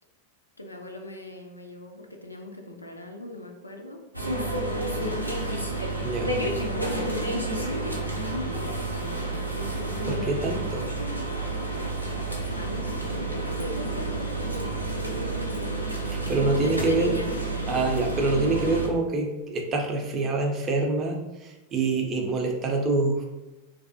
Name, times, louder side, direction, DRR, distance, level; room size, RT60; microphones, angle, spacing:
voice 1, 0.6-5.5 6.4-10.7 12.6-15.8 16.3-17.3 18.7-18.9, left 1 dB, 80° left, 3 dB, 0.3 m, -39 dB
sound 1, 4.1-18.9, right 2 dB, 90° right, 0.4 m, -30 dB
voice 2, 10.0-10.9 16.1-17.1 17.7-23.3, right 3 dB, 30° right, 2 dB, 0.4 m, -26 dB
2.3 x 2.1 x 2.6 m, 1.1 s
figure-of-eight pair, 90°, 0 cm